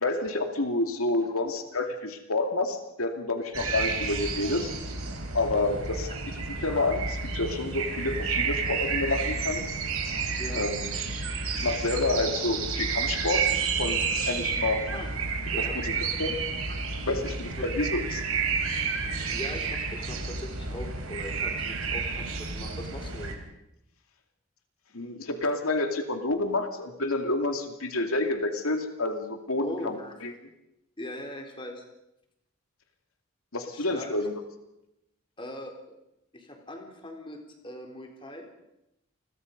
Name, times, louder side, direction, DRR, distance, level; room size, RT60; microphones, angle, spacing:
voice 1, 0.0-4.7 5.3-6.1 6.6-9.7 10.5-10.9 11.5-13.5 13.8-14.8 15.6-16.4 17.1-17.3 17.6-18.2 24.9-30.3 33.5-34.4, left 2 dB, 85° left, 5 dB, 2.6 m, -29 dB
sound 1, 3.5-23.3, right 5 dB, 85° right, 4.2 m, -30 dB
voice 2, 15.5-15.8 17.1-17.3 19.3-23.3 29.6-30.1 31.0-31.8 33.7-34.1 35.4-36.0 36.3-38.5, left 1 dB, 25° left, 3 dB, 3.9 m, -40 dB
29.0 x 22.5 x 5.4 m, 0.86 s
head